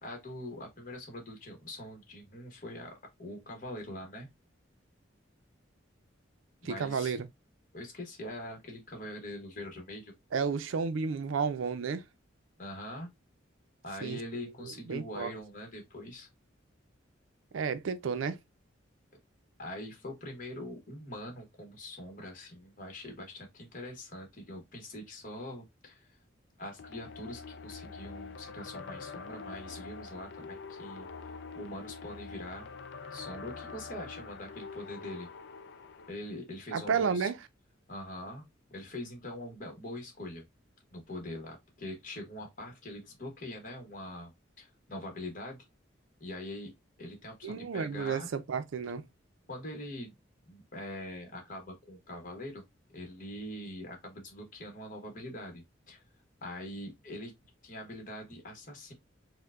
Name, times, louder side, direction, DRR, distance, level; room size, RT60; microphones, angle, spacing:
voice 1, 0.0-4.3 6.6-7.2 7.7-10.1 12.6-13.1 13.8-16.3 19.6-26.2 26.6-31.1 31.5-32.7 33.1-35.3 36.1-37.3 37.9-40.4 40.9-44.3 44.6-45.6 46.2-46.7 47.0-48.3 49.5-50.2 50.5-52.6 52.9-56.0 56.4-57.3 57.6-58.9, left 1 dB, 45° left, 1.0 m, -43 dB
voice 2, 6.6-7.3 10.3-12.0 14.0-15.3 17.5-18.4 36.7-37.4 47.4-49.0, right 5 dB, 85° right, 0.4 m, -32 dB
sound 1, 26.8-36.1, left 4 dB, 60° left, 0.4 m, -45 dB
4.4 x 2.1 x 2.4 m
head